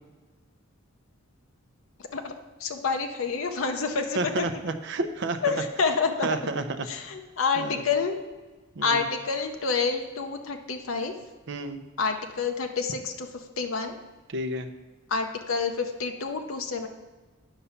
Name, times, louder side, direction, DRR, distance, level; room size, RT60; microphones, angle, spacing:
voice 1, 2.1-4.5 5.4-6.5 6.8-8.2 8.8-11.1 12.0-14.0 15.1-16.9, left 5 dB, 65° left, 5 dB, 0.7 m, -28 dB
voice 2, 4.2-5.4 6.2-6.9 7.6-7.8 8.8-9.0 11.5-11.8 14.3-14.7, right 2 dB, 55° right, 8 dB, 0.7 m, -30 dB
10.0 x 5.6 x 5.7 m, 1.3 s
head